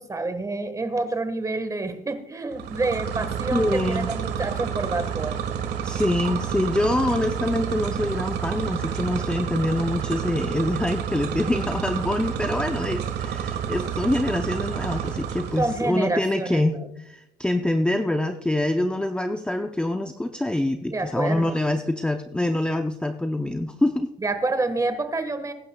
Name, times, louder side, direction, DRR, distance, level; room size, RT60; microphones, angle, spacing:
voice 1, 0.0-5.4 15.6-16.9 20.9-21.5 24.2-25.5, right 2 dB, 20° right, 9 dB, 1.5 m, -28 dB
sound 1, 2.5-15.9, right 8 dB, 75° right, 1.7 m, -29 dB
voice 2, 3.5-4.1 5.8-24.1, left 1 dB, 5° left, 6 dB, 0.6 m, -25 dB
21.0 x 11.0 x 2.3 m, 0.85 s
cardioid pair, 110°, 17 cm